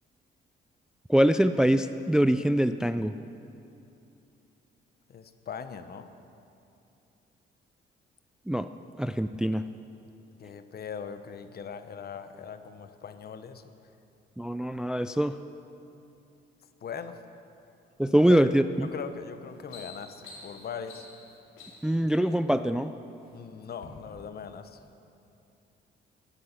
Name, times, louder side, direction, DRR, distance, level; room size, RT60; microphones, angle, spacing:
voice 1, 1.1-3.1 8.5-8.7 9.0-9.6 14.4-15.4 18.0-18.9 21.8-22.9, right 1 dB, 5° right, 11 dB, 0.3 m, -24 dB
voice 2, 5.1-6.1 10.4-13.6 16.8-17.2 18.3-18.5 18.8-21.1 23.3-24.8, left 7 dB, 50° left, 10 dB, 0.9 m, -40 dB
sound 1, 18.8-19.0 19.4-22.0 22.8-23.3 23.7-23.9, left 3 dB, 85° left, 3.2 m, -49 dB
15.5 x 11.0 x 5.9 m, 2.7 s
cardioid pair, 90°, 20 cm